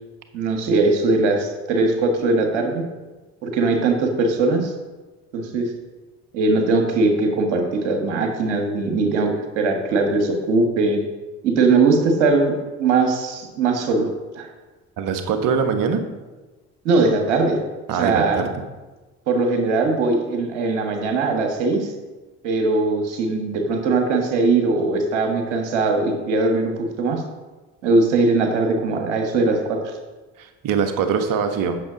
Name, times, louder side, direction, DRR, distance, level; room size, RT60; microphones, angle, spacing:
voice 1, 0.3-2.8 3.4-4.7 5.3-5.7 6.3-11.0 11.4-14.1 14.3-14.5 16.8-17.6 17.9-18.4 19.3-21.9 22.4-27.2 27.8-29.9, right 3 dB, 85° right, 3 dB, 1.6 m, -20 dB
voice 2, 15.0-16.0 17.9-18.6 30.4-31.8, right 6 dB, 60° right, 7 dB, 1.3 m, -22 dB
8.6 x 6.8 x 5.1 m, 1.2 s
hypercardioid pair, 60°, 35 cm